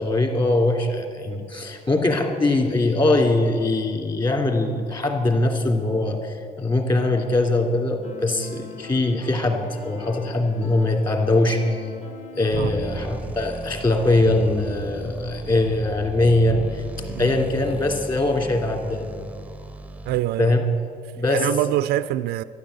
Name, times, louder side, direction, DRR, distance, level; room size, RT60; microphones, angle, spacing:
voice 1, 0.0-11.8 12.4-16.8 17.2-19.1 20.4-20.6 21.1-21.5, left 2 dB, 25° left, 2.7 m, -22 dB
sound 1, 8.0-13.2, left 3 dB, 45° left, 1.7 m, -40 dB
sound 2, 12.5-20.5, right 2 dB, 10° right, 0.6 m, -36 dB
voice 2, 20.1-20.5 21.3-22.4, right 14 dB, 75° right, 0.4 m, -24 dB
13.0 x 11.0 x 8.1 m
cardioid pair, 110°, 17 cm